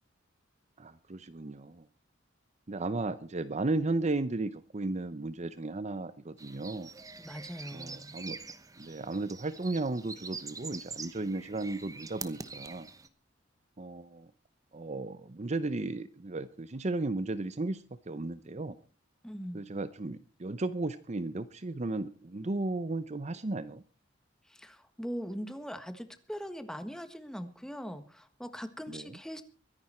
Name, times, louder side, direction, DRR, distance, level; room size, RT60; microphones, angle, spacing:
voice 1, 0.8-1.8 2.7-6.9 7.7-8.4 8.8-12.9 13.8-14.3 14.7-18.8 19.5-23.8 28.9-29.1, right 2 dB, 35° right, 13 dB, 0.7 m, -35 dB
sound 1, 6.4-13.1, right 4 dB, 20° right, 1.1 m, -45 dB
voice 2, 7.2-8.1 19.2-19.7 24.5-29.4, equal, 5° left, 10 dB, 1.5 m, -41 dB
23.5 x 10.5 x 4.4 m, 0.36 s
head